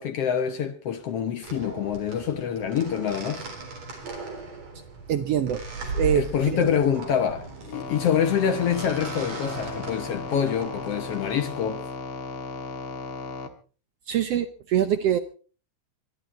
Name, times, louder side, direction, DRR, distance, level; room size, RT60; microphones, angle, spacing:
voice 1, 0.0-3.5 6.1-11.8, left 8 dB, 65° left, 1.6 m, -26 dB
sound 1, 1.4-11.3, right 3 dB, 55° right, 4.9 m, -37 dB
voice 2, 5.1-6.7 14.1-15.2, right 9 dB, 70° right, 1.5 m, -25 dB
sound 2, 7.7-13.5, left 3 dB, 50° left, 1.9 m, -36 dB
23.0 x 12.0 x 4.4 m
omnidirectional pair, 3.6 m